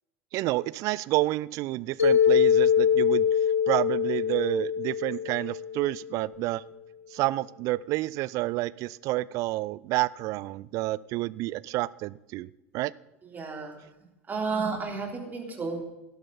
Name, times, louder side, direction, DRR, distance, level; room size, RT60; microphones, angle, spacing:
voice 1, 0.3-3.3 3.7-6.6 7.1-12.9, right 18 dB, 45° right, 21 dB, 0.4 m, -29 dB
Mallet percussion, 2.0-6.1, left 7 dB, 75° left, 2.3 m, -23 dB
voice 2, 13.3-13.8 14.3-15.8, right 4 dB, 25° right, 1 dB, 3.7 m, -32 dB
18.0 x 12.0 x 4.1 m, 0.96 s
figure-of-eight pair, 75°, 8 cm